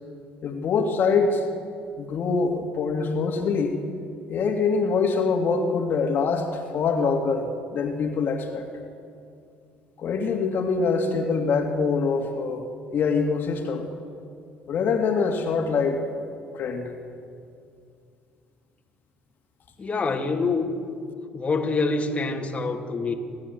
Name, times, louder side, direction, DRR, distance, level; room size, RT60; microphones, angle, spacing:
voice 1, 0.4-1.5 2.0-3.8 4.3-8.7 10.0-12.6 12.9-13.9 14.7-16.2 16.5-16.9, left 4 dB, 55° left, 2 dB, 2.5 m, -24 dB
voice 2, 19.8-20.7 21.3-23.1, left 3 dB, 30° left, 1 dB, 2.6 m, -26 dB
27.0 x 13.5 x 9.5 m, 2.4 s
supercardioid pair, 75°, 4 cm